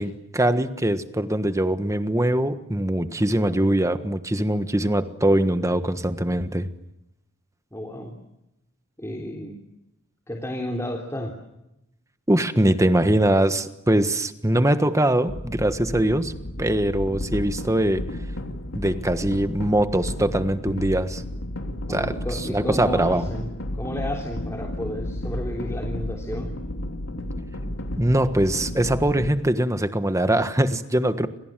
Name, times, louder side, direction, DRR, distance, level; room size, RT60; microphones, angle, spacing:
voice 1, 0.0-6.7 12.3-16.3 16.6-18.0 18.7-21.2 21.9-22.2 22.5-23.3 28.0-31.3, right 1 dB, 15° right, 10 dB, 1.5 m, -22 dB
voice 2, 7.7-8.1 9.0-9.6 10.3-11.3 21.9-26.5, left 1 dB, 15° left, 1 dB, 3.4 m, -32 dB
sound 1, 15.3-29.3, left 1 dB, 65° left, 3.1 m, -32 dB
29.5 x 27.0 x 7.6 m, 0.88 s
head